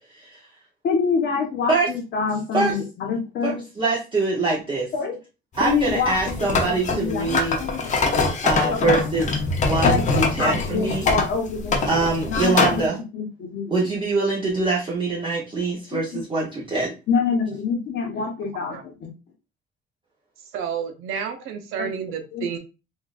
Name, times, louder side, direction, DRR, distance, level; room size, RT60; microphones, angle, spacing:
voice 1, 0.8-3.6 4.9-5.2 5.6-6.1 6.4-7.8 8.6-9.0 9.8-10.1 10.4-11.9 12.3-12.8 13.1-13.7 15.9-16.0 17.1-19.1 21.8-21.9 22.3-22.6, left 5 dB, 60° left, 2 dB, 1.0 m, -26 dB
voice 2, 3.4-4.9 5.5-7.6 8.4-9.3 9.6-11.1 11.8-13.0 13.7-16.9, right 3 dB, 25° right, -5 dB, 0.8 m, -24 dB
sound 1, 5.6-12.8, left 3 dB, 35° left, 0.7 m, -23 dB
voice 3, 20.5-22.6, right 7 dB, 85° right, 5 dB, 0.7 m, -30 dB
3.6 x 2.5 x 2.4 m, 0.30 s
cardioid pair, 145°, 21 cm